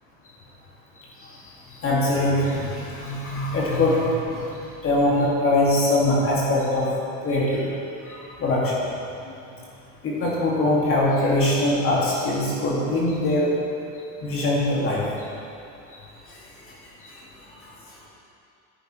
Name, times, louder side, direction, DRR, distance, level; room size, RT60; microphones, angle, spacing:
voice 1, 1.8-4.5 4.8-6.9 7.2-7.7 8.0-8.7 10.0-13.5 14.2-15.0, left 1 dB, 35° left, -5 dB, 2.1 m, -22 dB
10.5 x 10.0 x 3.1 m, 2.6 s
supercardioid pair, 135°, 37 cm